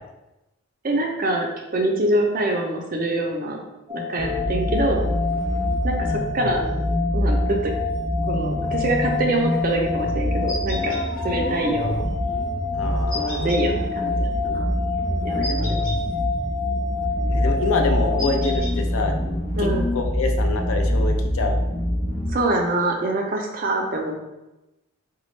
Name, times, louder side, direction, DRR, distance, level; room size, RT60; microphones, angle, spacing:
voice 1, 0.8-3.6 3.9-5.0 5.8-6.7 7.1-7.7 8.3-11.0 11.2-12.0 13.1-14.7 15.2-15.8 19.6-19.8 22.3-24.2, right 1 dB, 40° right, 1 dB, 0.5 m, -25 dB
sound 1, 3.9-18.6, left 4 dB, 10° left, 0.7 m, -29 dB
sound 2, 4.2-22.3, equal, 40° left, 0.7 m, -25 dB
sound 3, 10.5-11.0 13.1-13.6 15.4-16.0 18.2-18.7, left 1 dB, 65° left, 1.4 m, -32 dB
voice 2, 12.7-13.5 17.3-19.1 19.6-19.7 19.9-21.6, left 3 dB, 80° left, 4 dB, 0.5 m, -26 dB
4.1 x 2.2 x 3.1 m, 0.99 s
head